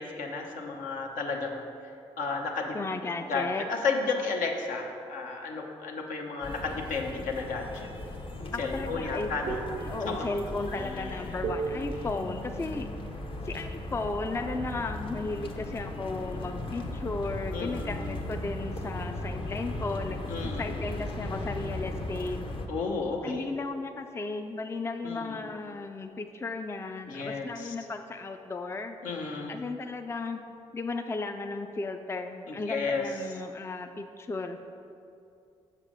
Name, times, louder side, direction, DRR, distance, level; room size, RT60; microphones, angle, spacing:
voice 1, 0.0-1.7 2.2-3.0 3.3-7.9 8.6-9.6 10.0-10.3 10.8-11.4 11.7-12.1 17.5-18.2 20.3-20.6 22.7-23.5 25.0-25.5 27.1-27.7 29.0-29.5 32.5-33.3, left 4 dB, 70° left, 1 dB, 1.0 m, -33 dB
voice 2, 2.7-3.7 8.5-12.9 13.4-22.4 23.2-29.0 29.5-30.4 30.7-34.7, left 3 dB, 20° left, 6 dB, 0.4 m, -35 dB
sound 1, 6.4-22.7, left 2 dB, 40° left, 0.9 m, -37 dB
sound 2, 8.4-14.0, right 5 dB, 55° right, 0.5 m, -40 dB
6.6 x 4.9 x 4.9 m, 2.6 s
hypercardioid pair, 45°, 14 cm